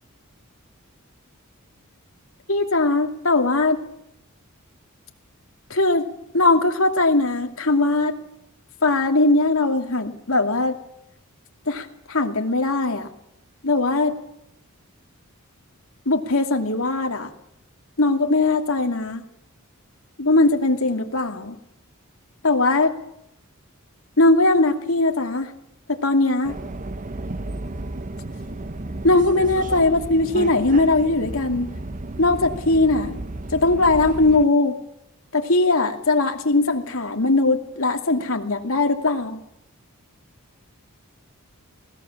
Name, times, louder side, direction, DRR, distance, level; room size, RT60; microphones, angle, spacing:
voice 1, 2.5-3.8 5.7-6.0 6.3-8.1 8.8-10.8 11.7-13.1 13.6-14.1 16.1-17.3 18.0-19.2 20.2-21.6 22.4-22.9 24.2-25.5 25.9-26.6 29.0-31.7 32.2-33.2 33.5-34.7 35.3-39.4, left 2 dB, 70° left, 4 dB, 2.6 m, -20 dB
Subway metro underground, 26.4-34.4, right 2 dB, 35° right, 0.8 m, -33 dB
20.5 x 18.0 x 7.3 m, 0.81 s
head